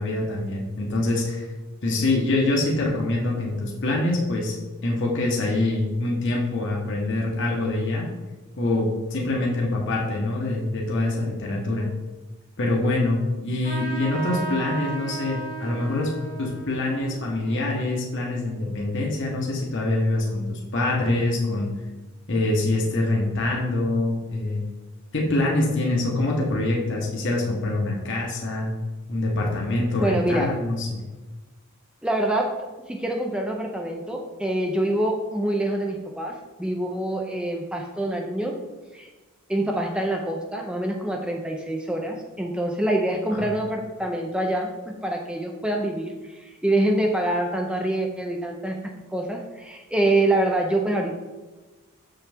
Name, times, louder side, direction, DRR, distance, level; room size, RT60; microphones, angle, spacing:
voice 1, 0.0-1.5 1.8-4.6 4.8-8.1 8.6-11.9 12.6-16.1 16.4-21.7 22.3-24.6 25.1-28.7 29.1-31.0 43.3-43.5, left 2 dB, 55° left, -2 dB, 1.1 m, -25 dB
Trumpet, 13.6-18.6, right 4 dB, 40° right, 1.2 m, -36 dB
voice 2, 30.0-30.5 32.0-38.6 38.9-39.1 39.5-51.1, right 1 dB, 5° right, 1 dB, 0.5 m, -26 dB
6.9 x 5.7 x 3.5 m, 1.2 s
head